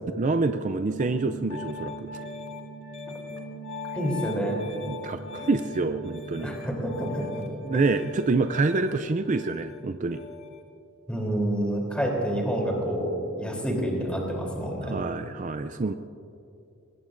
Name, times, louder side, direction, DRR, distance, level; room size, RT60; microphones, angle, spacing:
voice 1, 0.2-2.1 4.9-6.5 7.7-10.2 14.9-15.9, right 3 dB, 35° right, 8 dB, 0.5 m, -27 dB
Piano, 0.9-10.6, left 2 dB, 80° left, 2.5 m, -39 dB
voice 2, 3.9-4.7 6.4-7.3 11.1-13.1 13.4-14.9, right 1 dB, 5° left, -2 dB, 3.4 m, -28 dB
23.5 x 20.5 x 2.6 m, 2.6 s
head